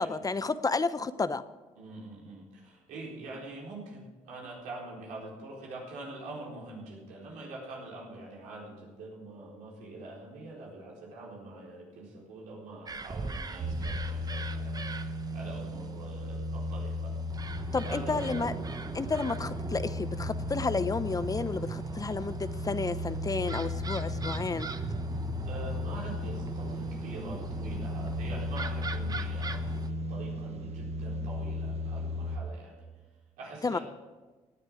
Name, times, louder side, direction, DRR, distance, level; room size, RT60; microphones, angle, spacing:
voice 1, 0.0-1.4 17.7-18.5 18.9-24.7 33.6-33.8, left 4 dB, 30° left, 14 dB, 0.7 m, -31 dB
voice 2, 1.8-14.8 15.3-17.2 17.9-18.6 25.5-32.9 33.4-33.8, right 2 dB, 85° right, -3 dB, 4.2 m, -44 dB
sound 1, 12.9-29.9, right 3 dB, 30° right, 1.0 m, -40 dB
sound 2, 13.6-32.4, left 1 dB, 55° right, 1.0 m, -36 dB
17.5 x 9.9 x 5.0 m, 1.3 s
supercardioid pair, 65°, 13 cm